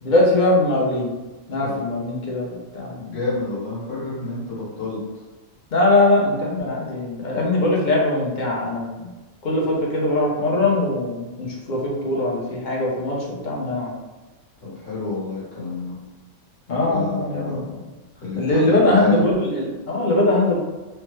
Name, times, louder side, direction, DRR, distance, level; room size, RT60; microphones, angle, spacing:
voice 1, 0.0-1.1 1.5-2.9 5.7-9.1 9.4-13.9 16.7-17.6 18.3-20.6, left 2 dB, 50° left, -3 dB, 0.6 m, -21 dB
voice 2, 3.0-5.0 14.6-16.0 16.9-17.8 18.2-19.2, left 3 dB, 70° left, -9 dB, 1.5 m, -29 dB
3.2 x 2.0 x 2.9 m, 1.2 s
omnidirectional pair, 1.3 m